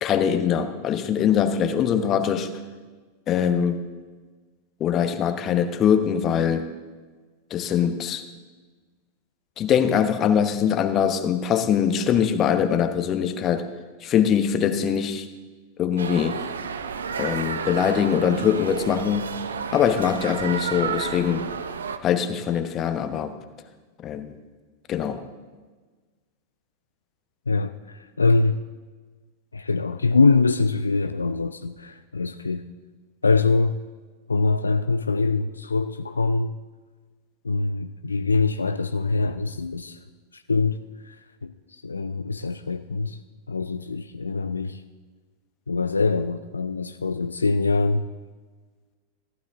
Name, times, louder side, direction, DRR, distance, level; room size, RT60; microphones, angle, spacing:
voice 1, 0.0-2.5 3.3-3.8 4.8-6.7 7.5-8.2 9.6-13.6 14.0-15.3 15.8-16.4 17.2-19.4 19.7-21.5 22.0-23.3 24.0-24.3 24.9-25.2, left 8 dB, 30° left, 9 dB, 0.9 m, -22 dB
sound 1, 16.0-22.0, right 6 dB, 70° right, 0.6 m, -31 dB
voice 2, 27.5-28.6 29.5-32.6 33.2-33.8 34.3-36.5 37.4-40.0 40.3-41.1 41.4-41.5 41.8-43.2 43.5-44.8 45.7-48.1, left 3 dB, 75° left, 10 dB, 0.3 m, -23 dB
14.5 x 11.5 x 3.6 m, 1.3 s
figure-of-eight pair, 90°, 0 cm